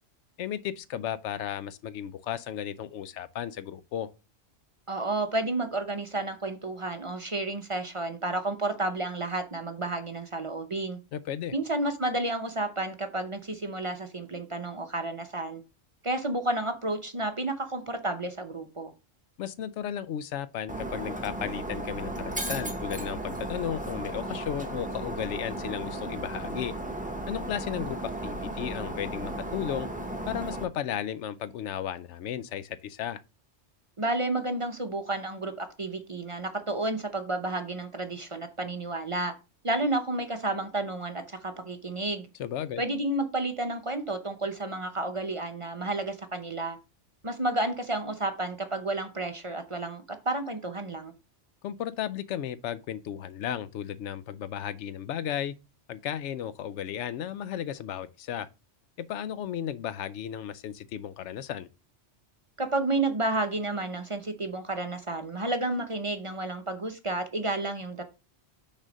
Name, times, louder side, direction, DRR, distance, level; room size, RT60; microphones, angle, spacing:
voice 1, 0.4-4.1 11.1-11.5 19.4-26.7 27.3-29.9 30.3-33.2 42.4-42.8 51.6-55.5 55.9-58.5 59.0-61.7, left 10 dB, 85° left, 0.9 m, -34 dB
voice 2, 4.9-11.0 11.5-15.6 16.0-18.9 34.0-39.3 39.6-42.3 42.8-46.8 47.2-51.1 62.6-68.0, right 2 dB, 30° right, 0.7 m, -31 dB
Shatter, 20.7-30.6, right 1 dB, 10° right, 1.0 m, -35 dB
6.2 x 4.2 x 5.2 m
omnidirectional pair, 1.2 m